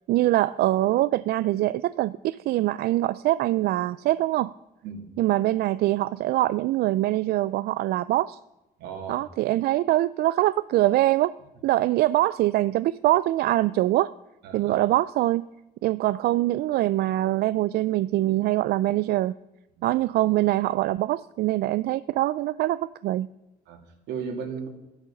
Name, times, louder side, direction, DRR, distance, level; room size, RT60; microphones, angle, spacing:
voice 1, 0.1-4.5 5.2-8.4 9.1-11.4 11.6-14.1 14.5-15.4 15.8-19.3 19.8-23.3, right 16 dB, 70° right, 16 dB, 0.4 m, -23 dB
voice 2, 8.8-9.2 14.4-14.9 19.8-19.9 23.7-24.7, right 6 dB, 90° right, 4 dB, 2.5 m, -36 dB
13.0 x 10.5 x 7.0 m, 0.99 s
cardioid pair, 110°, 17 cm